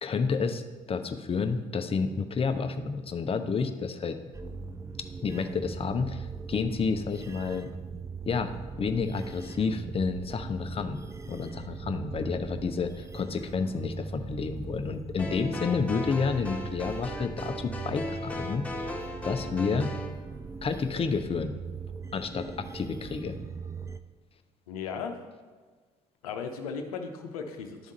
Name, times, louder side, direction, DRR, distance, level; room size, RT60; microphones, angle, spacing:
voice 1, 0.0-4.2 5.2-7.7 8.3-8.5 8.8-18.9 19.2-19.9 20.6-21.6 22.1-23.4, left 5 dB, 30° left, 8 dB, 0.7 m, -30 dB
sound 1, 4.3-24.0, right 4 dB, 15° right, 0.4 m, -40 dB
sound 2, 15.2-20.1, left 1 dB, 5° left, 1.4 m, -37 dB
voice 2, 24.7-25.1 26.2-27.9, left 6 dB, 85° left, 5 dB, 0.7 m, -36 dB
10.5 x 3.6 x 4.1 m, 1.5 s
hypercardioid pair, 55°, 18 cm